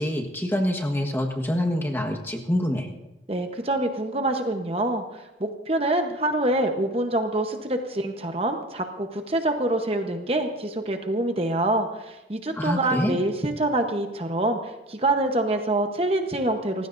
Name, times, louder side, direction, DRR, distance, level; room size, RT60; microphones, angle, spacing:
voice 1, 0.0-2.9 12.6-13.2, left 1 dB, 15° left, 1 dB, 1.4 m, -26 dB
voice 2, 3.3-16.9, right 1 dB, 35° right, 5 dB, 1.0 m, -26 dB
29.5 x 15.5 x 2.7 m, 1.0 s
head